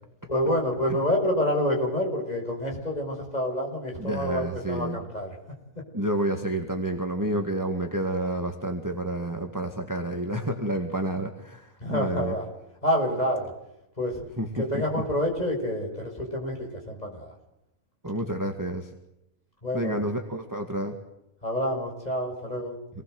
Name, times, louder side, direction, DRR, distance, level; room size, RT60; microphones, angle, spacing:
voice 1, 0.3-5.4 11.8-12.4 12.8-13.5 14.0-14.2 14.5-17.3 19.6-20.0 21.4-22.8, equal, 25° left, 1 dB, 6.0 m, -28 dB
voice 2, 4.0-5.0 5.9-12.4 14.4-14.6 14.9-15.0 18.0-18.9 19.7-21.0, right 1 dB, 10° right, 4 dB, 2.0 m, -29 dB
27.5 x 20.0 x 7.9 m, 0.87 s
omnidirectional pair, 1.6 m